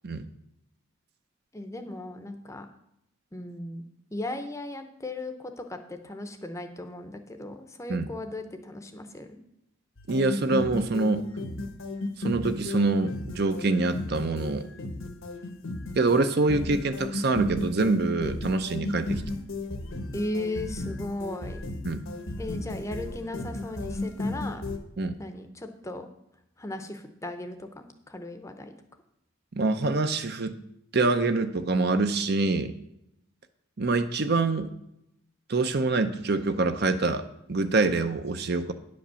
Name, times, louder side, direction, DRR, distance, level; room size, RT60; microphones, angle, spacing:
voice 1, 1.5-2.7 3.3-9.4 20.1-21.6 22.4-24.6 25.2-26.1 26.6-28.7, left 1 dB, 15° left, 7 dB, 0.7 m, -37 dB
sound 1, 10.0-24.8, left 2 dB, 70° left, 1.2 m, -34 dB
voice 2, 10.1-11.3 12.2-14.7 15.9-19.2 21.8-22.1 25.0-25.2 29.6-30.6 30.9-32.7 33.8-34.7 35.5-37.2 37.5-38.7, right 3 dB, 50° right, 9 dB, 0.6 m, -25 dB
10.0 x 5.2 x 6.9 m, 0.80 s
head